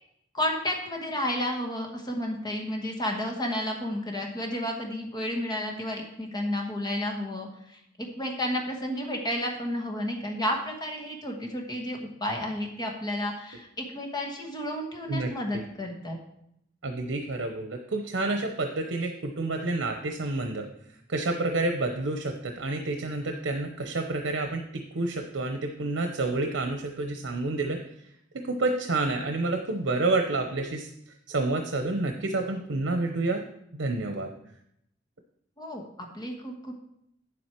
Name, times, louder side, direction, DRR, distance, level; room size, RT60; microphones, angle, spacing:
voice 1, 0.3-16.2 35.6-36.7, left 1 dB, 20° left, 1 dB, 1.2 m, -32 dB
voice 2, 15.1-15.6 16.8-20.7 21.1-24.6 24.9-27.8 28.3-30.9 31.3-33.4 33.7-34.3, right 2 dB, 85° right, 5 dB, 0.8 m, -29 dB
9.0 x 7.6 x 4.5 m, 0.76 s
head